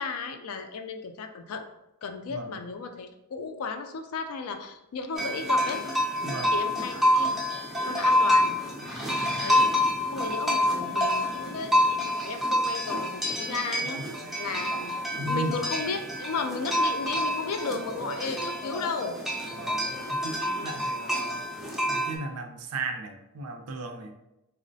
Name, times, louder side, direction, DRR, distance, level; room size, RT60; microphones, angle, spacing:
voice 1, 0.0-1.7 2.0-5.8 6.5-7.4 7.9-8.6 9.4-14.0 14.4-19.2, left 4 dB, 70° left, 7 dB, 0.4 m, -34 dB
sound 1, 5.2-22.2, left 1 dB, ahead, 0.3 m, -27 dB
voice 2, 6.2-6.5 8.8-8.9 9.2-9.5 13.9-14.5 15.2-15.6 19.5-21.4 21.9-24.1, right 3 dB, 90° right, 5 dB, 0.4 m, -36 dB
3.8 x 2.0 x 2.6 m, 0.90 s
head